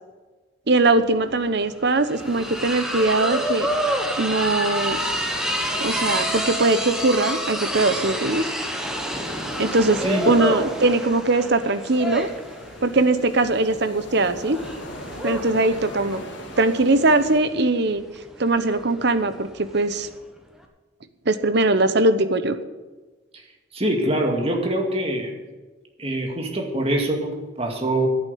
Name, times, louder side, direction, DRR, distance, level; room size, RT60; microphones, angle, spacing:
voice 1, 0.7-3.7 4.2-5.0 5.8-8.5 9.6-12.3 12.8-14.6 15.2-16.2 16.6-18.0 18.4-20.1 21.3-22.6, right 2 dB, 60° right, 11 dB, 1.0 m, -21 dB
sound 1, 1.0-1.1 1.3-20.2, equal, 5° right, 1.4 m, -29 dB
sound 2, 2.1-17.4, equal, 65° left, 2.3 m, -40 dB
voice 2, 23.7-25.3 26.0-28.1, right 1 dB, 30° right, 2 dB, 2.2 m, -24 dB
11.0 x 9.0 x 8.6 m, 1.3 s
head